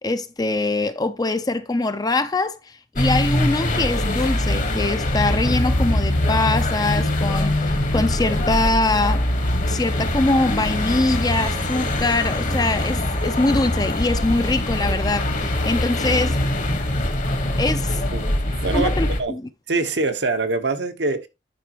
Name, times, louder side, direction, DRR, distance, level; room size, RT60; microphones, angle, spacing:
voice 1, 0.0-9.2 9.7-16.4 17.6-18.0 18.7-19.4, left 2 dB, 20° left, 0.6 m, -23 dB
sound 1, 3.0-19.2, left 1 dB, 45° left, 1.3 m, -23 dB
voice 2, 19.7-21.3, right 3 dB, 70° right, 1.1 m, -23 dB
10.0 x 5.4 x 3.0 m
head